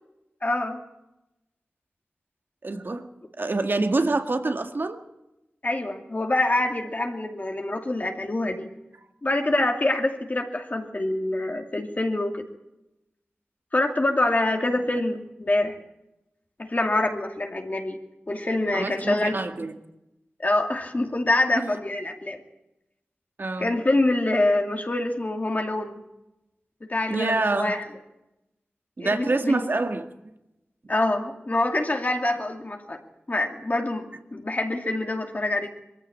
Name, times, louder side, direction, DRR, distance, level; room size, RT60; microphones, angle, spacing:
voice 1, 0.4-0.8 5.6-8.7 9.2-12.5 13.7-15.8 16.6-18.0 18.3-19.4 20.4-22.4 23.6-26.0 26.9-27.8 29.0-29.7 30.9-33.0 33.3-35.7, left 2 dB, 40° left, 3 dB, 2.5 m, -25 dB
voice 2, 2.6-3.1 3.4-5.0 18.7-19.7 21.5-21.8 23.4-23.7 27.1-27.8 29.0-30.0, right 3 dB, 55° right, 7 dB, 1.9 m, -26 dB
22.5 x 14.5 x 8.7 m, 0.92 s
wide cardioid pair, 80°, 4 cm